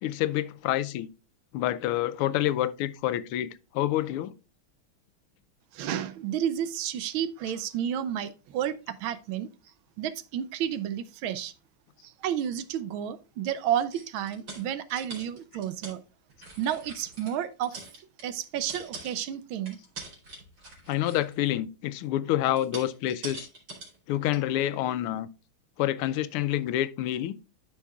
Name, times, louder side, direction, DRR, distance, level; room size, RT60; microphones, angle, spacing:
voice 1, 0.0-1.1 1.5-4.3 20.9-23.5 24.1-25.3 25.8-27.4, left 13 dB, 85° left, 1.5 m, -28 dB
voice 2, 5.7-9.5 10.0-11.5 12.0-16.0 16.6-19.8, right 10 dB, 75° right, 1.4 m, -31 dB
sound 1, 13.9-16.0 16.3-17.4 17.6-19.4 19.7-21.5 22.4-24.0 24.3-24.4, right 3 dB, 60° right, 3.9 m, -44 dB
13.0 x 5.6 x 2.3 m
omnidirectional pair, 2.4 m